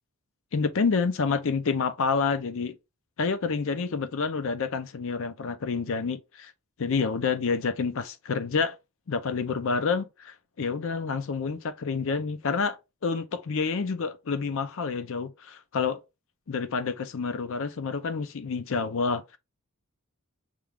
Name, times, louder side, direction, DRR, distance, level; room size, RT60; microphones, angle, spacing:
voice 1, 0.5-2.8 3.2-6.5 6.8-8.8 9.1-12.8 13.0-16.0 16.5-19.4, left 5 dB, 60° left, 0.5 m, -28 dB
6.0 x 2.3 x 3.4 m
head